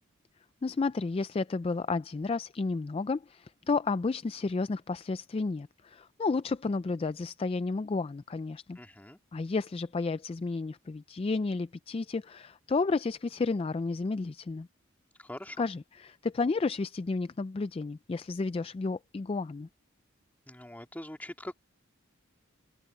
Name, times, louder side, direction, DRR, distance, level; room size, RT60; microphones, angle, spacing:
voice 1, 0.6-8.8 9.3-14.7 15.6-19.7, left 3 dB, 30° left, 0.3 m, -32 dB
voice 2, 8.8-9.2 15.2-15.7 20.5-21.5, left 1 dB, 10° left, 2.1 m, -43 dB
open air
head